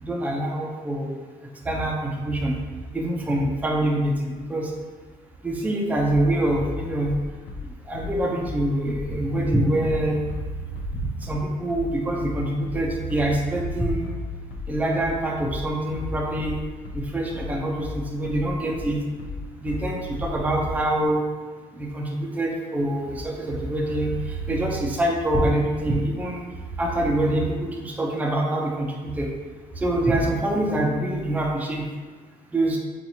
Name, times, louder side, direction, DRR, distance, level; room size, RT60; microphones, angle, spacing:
voice 1, 0.0-1.2 1.7-2.6 2.9-4.7 5.4-7.1 7.9-10.3 11.2-14.1 14.7-16.6 16.9-19.0 19.6-21.3 21.8-26.4 26.8-29.3 29.8-31.9 32.5-32.8, right 1 dB, 10° right, -1 dB, 0.4 m, -25 dB
Bass drum, 6.1-21.1, left 3 dB, 75° left, 0.6 m, -36 dB
4.2 x 2.4 x 2.7 m, 1.4 s
cardioid pair, 110°, 17 cm